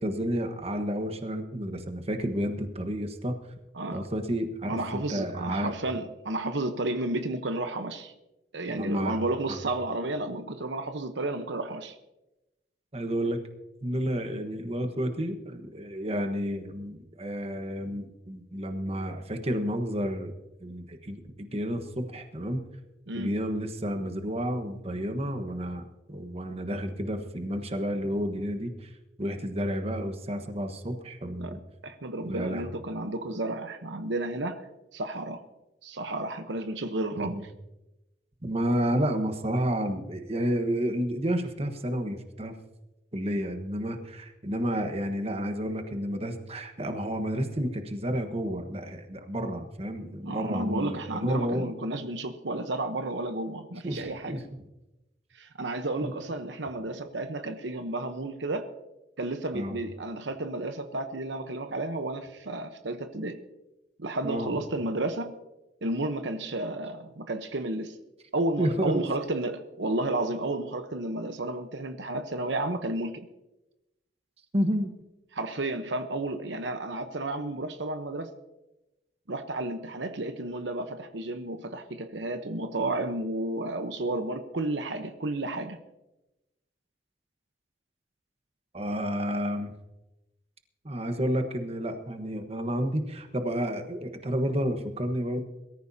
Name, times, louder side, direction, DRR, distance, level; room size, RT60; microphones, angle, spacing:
voice 1, 0.0-3.4 3.9-5.7 8.8-9.2 9.5-9.6 12.9-13.4 13.8-20.3 20.6-22.6 23.1-28.9 29.2-31.6 32.2-32.7 37.2-37.4 38.4-42.6 43.1-51.7 53.8-54.4 56.0-56.1 59.5-59.8 64.2-64.5 68.6-69.1 74.5-74.9 88.7-89.7 90.8-95.4, equal, 35° right, 6 dB, 1.3 m, -31 dB
voice 2, 4.7-8.1 8.5-12.0 23.1-23.3 31.4-31.5 31.8-34.6 34.9-35.4 35.8-37.5 50.2-54.4 55.3-58.7 59.2-63.4 64.0-65.3 65.8-68.0 68.3-73.3 75.3-78.3 79.3-85.8, right 2 dB, 75° right, 8 dB, 1.0 m, -32 dB
22.5 x 14.0 x 2.8 m, 0.97 s
head